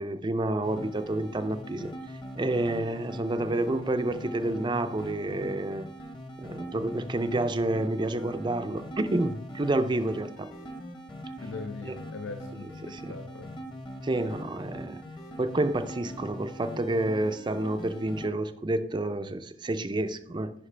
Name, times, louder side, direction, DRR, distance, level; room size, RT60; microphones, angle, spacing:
voice 1, 0.0-1.9 2.4-5.9 6.4-10.5 12.8-13.1 14.0-15.0 15.4-20.5, right 2 dB, 25° right, 0.4 m, -29 dB
sound 1, 0.6-18.3, equal, 25° left, 0.9 m, -42 dB
voice 2, 11.4-13.5, left 4 dB, 75° left, 0.6 m, -41 dB
9.8 x 5.3 x 3.3 m
head